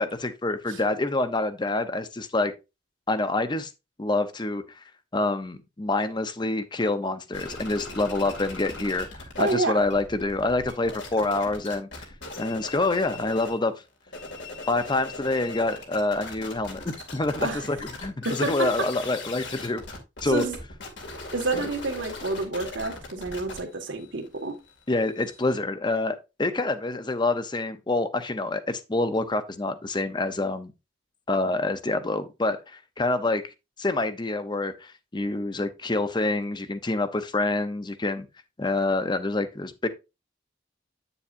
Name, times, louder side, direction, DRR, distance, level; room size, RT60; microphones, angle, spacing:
voice 1, 0.0-2.5 3.1-3.7 4.0-4.6 5.1-11.9 12.4-13.7 14.7-19.8 20.2-20.4 21.5-21.7 24.9-30.7 31.3-33.4 33.8-38.3 38.6-39.9, left 2 dB, 25° left, 0.7 m, -27 dB
sound 1, 7.3-9.5 9.8-13.6 14.0-25.6, left 2 dB, 70° left, 2.3 m, -39 dB
voice 2, 9.4-9.8 17.4-17.7 18.2-18.9 20.2-20.6 21.3-24.6, right 3 dB, 85° right, 1.8 m, -29 dB
8.6 x 7.0 x 2.6 m
head